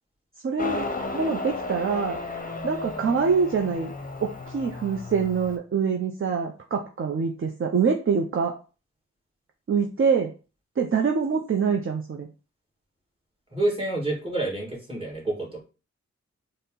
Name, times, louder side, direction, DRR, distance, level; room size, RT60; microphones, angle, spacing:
voice 1, 0.4-0.9 1.1-2.2 2.6-3.9 4.2-8.5 9.7-10.3 10.8-12.3, right 5 dB, 45° right, 2 dB, 0.6 m, -25 dB
Motorcycle, 0.6-5.6, left 3 dB, 30° left, 0.7 m, -34 dB
voice 2, 13.5-15.6, right 2 dB, 20° right, -2 dB, 1.9 m, -28 dB
4.2 x 2.1 x 3.7 m, 0.34 s
cardioid pair, 50°, 29 cm